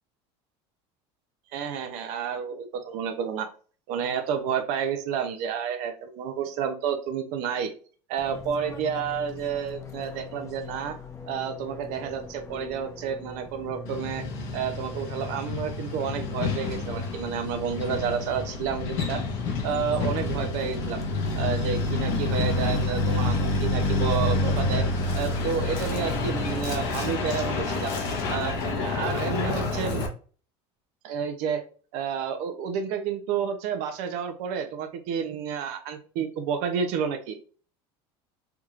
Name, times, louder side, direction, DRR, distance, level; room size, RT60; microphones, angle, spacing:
voice 1, 1.5-3.5 3.9-7.7 8.1-11.0 11.3-14.3 14.5-19.2 19.6-21.0 21.4-24.9 25.1-27.9 28.3-30.0 31.0-31.6 31.9-37.4, right 7 dB, 65° right, 7 dB, 0.6 m, -30 dB
Fixed-wing aircraft airplane, 8.2-27.9, left 3 dB, 25° left, 0.6 m, -43 dB
Truck, 13.9-30.1, left 3 dB, 70° left, 1.1 m, -28 dB
3.5 x 3.0 x 2.4 m, 0.40 s
supercardioid pair, 130°, 13 cm